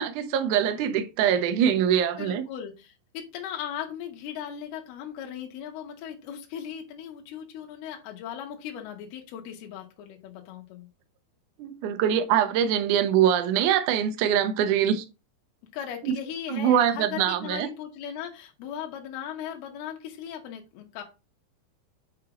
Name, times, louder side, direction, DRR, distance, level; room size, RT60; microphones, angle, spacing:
voice 1, 0.0-2.4 11.6-15.0 16.0-16.2 16.5-17.7, right 9 dB, 80° right, 1.7 m, -23 dB
voice 2, 2.2-10.9 15.7-21.0, left 9 dB, 75° left, 3.0 m, -38 dB
7.2 x 5.1 x 3.0 m
omnidirectional pair, 4.7 m